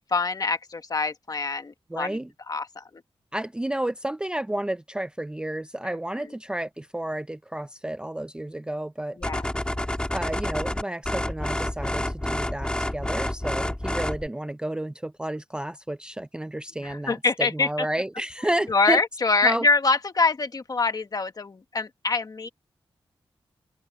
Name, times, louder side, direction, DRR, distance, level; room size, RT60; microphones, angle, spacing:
voice 1, 0.1-2.2 2.5-3.0 5.8-6.3 9.2-9.4 16.8-17.9 18.7-22.5, left 4 dB, 40° left, 1.4 m, -25 dB
voice 2, 1.9-2.3 3.3-9.2 10.1-19.0 19.4-19.6, right 1 dB, 10° right, 0.4 m, -31 dB
sound 1, 9.2-14.3, left 1 dB, 10° left, 2.7 m, -29 dB
open air
wide cardioid pair, 150°, 10 cm